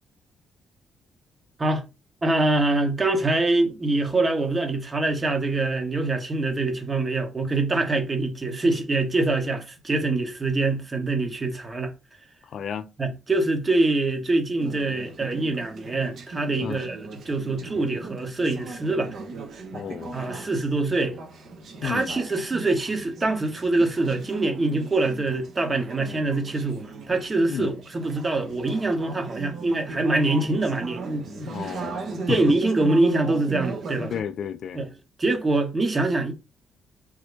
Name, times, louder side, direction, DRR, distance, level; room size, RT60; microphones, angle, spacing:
voice 1, 2.2-11.9 13.0-17.0 17.3-19.2 20.1-21.2 21.8-31.7 32.1-34.1 34.8-34.9 35.2-36.3, right 2 dB, 30° right, 0.9 m, -24 dB
voice 2, 12.4-12.9 16.6-16.9 19.7-20.2 21.8-22.2 27.5-27.7 31.4-32.6 34.1-34.8, left 8 dB, 65° left, 0.3 m, -32 dB
Conversation / Chatter, 14.6-34.2, right 3 dB, 65° right, 0.8 m, -38 dB
3.5 x 2.0 x 3.2 m
cardioid pair, 90°, 0 cm